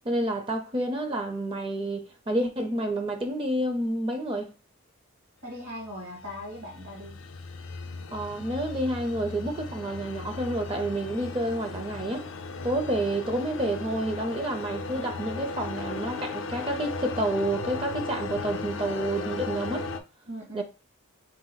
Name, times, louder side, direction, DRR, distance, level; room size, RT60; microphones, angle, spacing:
voice 1, 0.0-4.5 8.1-12.3 12.6-19.9 20.5-20.6, right 1 dB, 25° right, 0.5 m, -29 dB
voice 2, 5.4-7.2 20.3-20.6, equal, 80° right, 2.1 m, -39 dB
sound 1, 5.9-20.0, left 4 dB, 60° left, 0.4 m, -36 dB
4.1 x 2.2 x 3.9 m
head